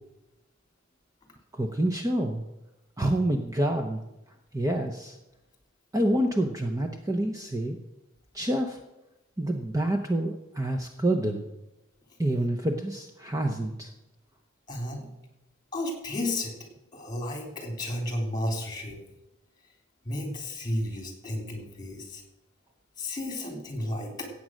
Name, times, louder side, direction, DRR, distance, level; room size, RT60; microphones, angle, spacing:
voice 1, 1.5-2.4 3.0-4.0 4.5-5.2 5.9-7.8 8.3-8.8 9.4-11.5 12.2-13.9, right 1 dB, 15° right, 4 dB, 0.8 m, -27 dB
voice 2, 14.7-15.0 15.7-16.5 16.9-19.0 20.0-22.2 23.0-24.3, left 1 dB, 20° left, 2 dB, 3.3 m, -32 dB
15.5 x 8.7 x 6.3 m, 0.96 s
head